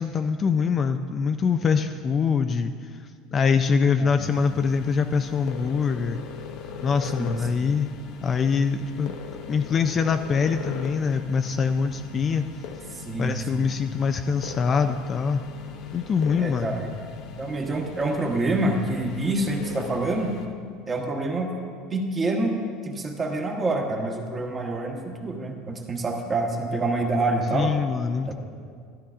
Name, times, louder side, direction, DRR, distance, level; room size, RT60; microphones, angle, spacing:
voice 1, 0.0-2.7 3.3-6.2 6.8-7.9 8.2-9.1 9.5-12.4 13.2-15.4 15.9-16.7 27.5-28.3, left 5 dB, 30° left, 8 dB, 0.3 m, -24 dB
sound 1, 4.2-20.5, left 6 dB, 60° left, 0.8 m, -39 dB
voice 2, 7.2-7.6 12.9-13.7 16.4-16.9 17.4-20.3 20.9-21.5 21.9-22.6 22.8-27.7 28.3-28.4, right 2 dB, 20° right, 2 dB, 1.0 m, -27 dB
13.0 x 11.5 x 2.4 m, 2.1 s
cardioid pair, 140°, 0 cm